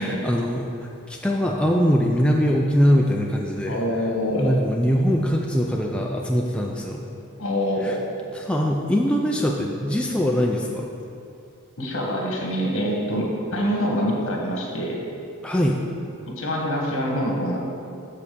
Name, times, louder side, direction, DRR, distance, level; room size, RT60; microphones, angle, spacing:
voice 1, 0.0-3.8 4.4-7.0 7.8-7.9 8.3-10.9 15.4-15.8, equal, 5° left, -1 dB, 0.4 m, -22 dB
voice 2, 3.7-4.5 7.4-8.1 11.8-15.0 16.3-17.6, equal, 65° left, -1 dB, 1.4 m, -25 dB
7.5 x 4.1 x 6.7 m, 2.6 s
head